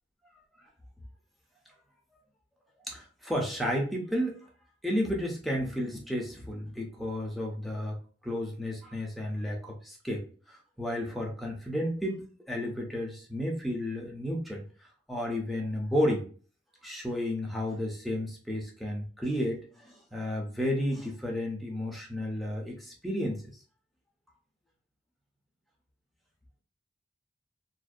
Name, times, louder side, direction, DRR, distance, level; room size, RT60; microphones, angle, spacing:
voice 1, 2.9-4.5 4.8-8.0 8.2-14.6 15.1-16.3 16.8-23.4, equal, ahead, -1 dB, 0.5 m, -32 dB
2.5 x 2.1 x 2.4 m, 0.40 s
head